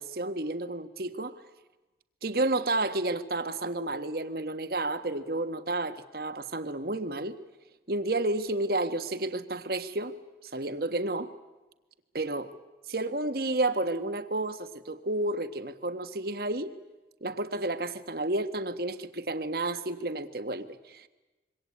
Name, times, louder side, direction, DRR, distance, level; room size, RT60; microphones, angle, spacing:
voice 1, 0.0-1.3 2.2-7.4 7.9-10.1 10.5-11.3 12.1-12.5 12.9-16.7 17.2-21.1, right 2 dB, 55° right, 10 dB, 1.5 m, -31 dB
26.5 x 24.0 x 8.6 m, 1.1 s
head